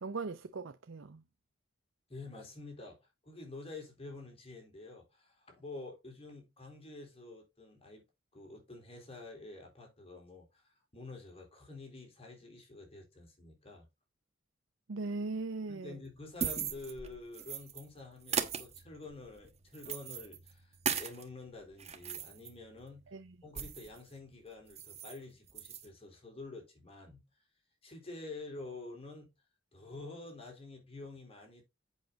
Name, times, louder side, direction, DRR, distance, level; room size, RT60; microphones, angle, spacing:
voice 1, 0.0-1.2 14.9-16.0 23.1-23.3, right 3 dB, 80° right, 0.6 m, -39 dB
voice 2, 2.1-3.0 3.2-8.0 8.3-13.9 15.7-20.7 21.0-23.1 23.4-27.2 27.8-29.3 29.7-31.6, left 2 dB, 30° left, 3.8 m, -48 dB
sound 1, 16.1-17.8 18.2-21.2 21.6-24.0 24.3-24.4 24.7-25.2 25.5-25.9, right 6 dB, 35° right, 1.2 m, -39 dB
8.3 x 6.4 x 3.9 m
head